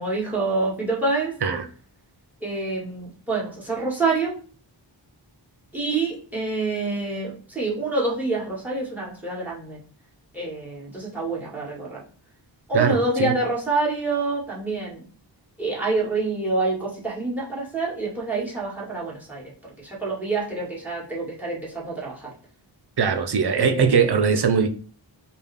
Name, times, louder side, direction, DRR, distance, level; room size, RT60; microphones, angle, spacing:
voice 1, 0.0-1.3 2.4-4.3 5.7-9.8 10.3-12.0 12.7-15.0 15.6-19.4 19.8-22.3 23.6-24.2, right 3 dB, 5° right, 2.0 m, -27 dB
voice 2, 12.7-13.3 23.0-24.7, right 6 dB, 55° right, 0.7 m, -21 dB
5.1 x 2.4 x 3.5 m
wide cardioid pair, 65°, 47 cm